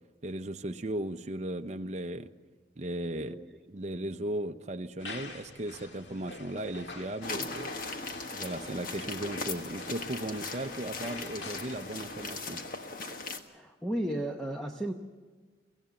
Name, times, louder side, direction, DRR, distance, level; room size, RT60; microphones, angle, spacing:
voice 1, 0.2-2.3 2.8-3.4 3.7-7.7 8.3-12.6, right 1 dB, 40° right, 6 dB, 0.7 m, -36 dB
voice 2, 3.2-3.6 13.5-14.9, right 1 dB, 5° left, 2 dB, 0.9 m, -34 dB
sound 1, 5.0-12.4, left 3 dB, 80° left, 1.8 m, -46 dB
sound 2, 7.2-13.4, left 3 dB, 50° left, 1.4 m, -39 dB
24.0 x 16.5 x 7.1 m, 1.4 s
head